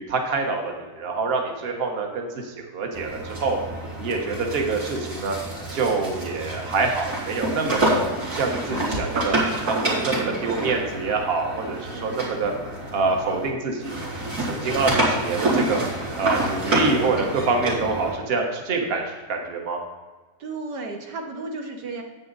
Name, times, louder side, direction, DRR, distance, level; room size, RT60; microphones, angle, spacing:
voice 1, 0.0-3.6 4.0-5.4 5.7-8.0 8.3-12.5 12.9-13.9 14.4-15.8 16.2-19.8, right 3 dB, 40° right, 2 dB, 1.3 m, -26 dB
sound 1, 2.9-13.5 13.8-18.2, right 1 dB, 60° right, 3.2 m, -28 dB
voice 2, 11.9-12.5 17.7-18.0 20.4-22.0, right 3 dB, 80° right, 2 dB, 1.7 m, -35 dB
9.8 x 8.1 x 4.0 m, 1.3 s
omnidirectional pair, 1.8 m